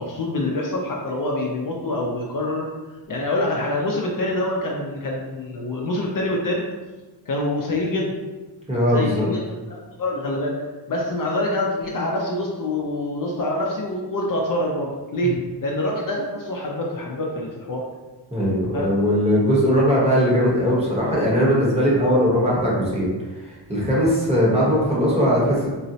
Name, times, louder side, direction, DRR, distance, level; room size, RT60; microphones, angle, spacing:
voice 1, 0.0-2.7 3.1-6.6 7.3-8.1 8.9-10.6 10.9-17.8 18.7-18.9, left 1 dB, 50° left, -2 dB, 0.5 m, -26 dB
voice 2, 8.7-9.3 15.2-15.3 18.3-23.1 23.4-25.7, equal, 15° right, -6 dB, 0.9 m, -19 dB
3.8 x 2.0 x 2.7 m, 1.2 s
wide cardioid pair, 140°, 43 cm